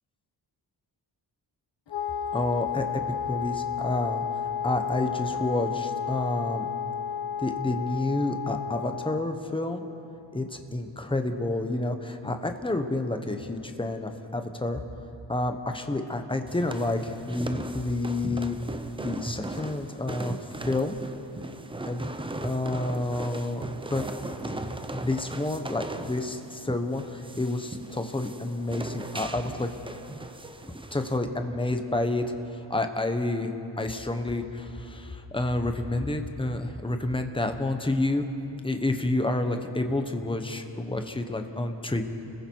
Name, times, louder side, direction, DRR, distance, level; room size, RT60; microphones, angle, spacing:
Wind instrument woodwind instrument, 1.9-9.3, left 8 dB, 75° left, 1.1 m, -32 dB
voice 1, 2.3-3.0 3.3-4.2 4.6-6.7 7.4-9.8 10.3-14.8 15.3-18.6 19.0-20.4 20.6-21.0 21.9-22.1 22.4-23.6 23.9-24.6 24.9-29.7 30.9-32.3 32.7-38.3 38.6-42.0, left 2 dB, 10° left, 6 dB, 1.1 m, -29 dB
sound 1, 16.5-31.2, right 2 dB, 10° right, 0.7 m, -38 dB
30.0 x 21.0 x 4.7 m, 2.9 s
wide cardioid pair, 170°, 43 cm